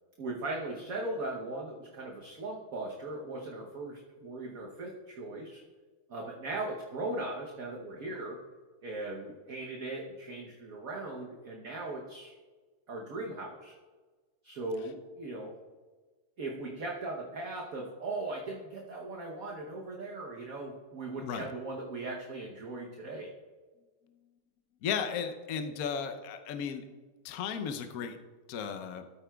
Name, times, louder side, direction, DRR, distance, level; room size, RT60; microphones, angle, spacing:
voice 1, 0.2-5.6 6.1-8.4 8.8-12.3 12.9-13.7 14.4-15.5 16.4-23.3, right 2 dB, 55° right, -1 dB, 1.1 m, -38 dB
voice 2, 24.8-26.9 27.2-28.2 28.5-29.0, left 7 dB, 70° left, 6 dB, 0.8 m, -35 dB
13.5 x 8.8 x 2.3 m, 1.4 s
omnidirectional pair, 2.4 m